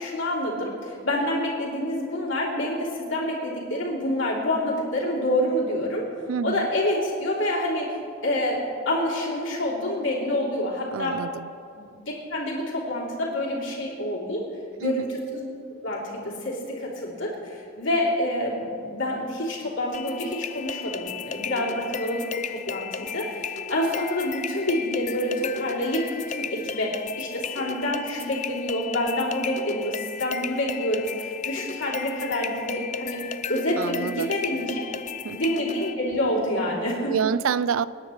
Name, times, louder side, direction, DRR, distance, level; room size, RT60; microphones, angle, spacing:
voice 1, 0.0-6.0 6.4-8.0 8.2-11.2 11.8-14.4 14.8-15.1 15.3-15.5 15.8-22.3 22.7-33.2 33.5-34.8 35.3-37.1, left 1 dB, 65° left, -4 dB, 3.2 m, -27 dB
voice 2, 6.3-6.7 10.9-11.5 14.8-15.1 33.8-34.3 35.2-35.4 37.1-37.9, right 7 dB, 75° right, 17 dB, 0.4 m, -27 dB
sound 1, 19.9-35.9, left 7 dB, 35° left, 0.4 m, -35 dB
26.5 x 10.0 x 3.2 m, 2.5 s
head